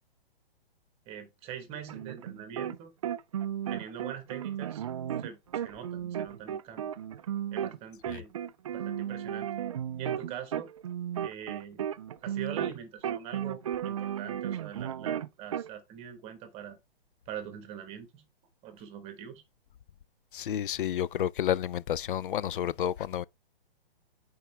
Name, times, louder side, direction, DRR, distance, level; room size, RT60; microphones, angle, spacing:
voice 1, 1.1-2.9 3.7-4.9 5.2-6.9 7.5-8.3 8.7-9.5 10.0-10.7 11.2-11.8 12.2-16.8 17.3-18.2 18.6-19.4, right 9 dB, 20° right, 1.3 m, -43 dB
sound 1, 1.9-2.8 3.0-7.8 8.0-12.8 13.0-15.7, right 10 dB, 35° right, 0.4 m, -34 dB
voice 2, 20.3-23.2, left 10 dB, 60° left, 0.5 m, -30 dB
8.2 x 4.5 x 3.3 m
hypercardioid pair, 150°, 30 cm